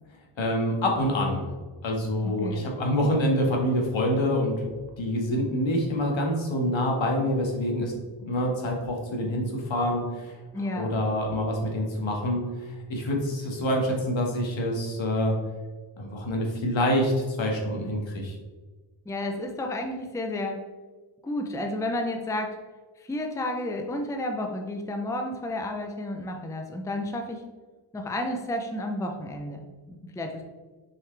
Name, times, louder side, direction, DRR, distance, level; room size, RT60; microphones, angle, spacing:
voice 1, 0.4-1.5 1.8-4.7 5.0-7.9 8.2-10.3 10.8-15.4 16.0-18.4, left 1 dB, 70° left, 0 dB, 1.7 m, -26 dB
voice 2, 2.2-2.7 10.5-10.9 19.1-20.6 21.2-22.6 23.0-27.4 27.9-30.4, left 1 dB, 5° left, 3 dB, 0.5 m, -31 dB
6.7 x 4.9 x 3.3 m, 1.3 s
wide cardioid pair, 135°, 47 cm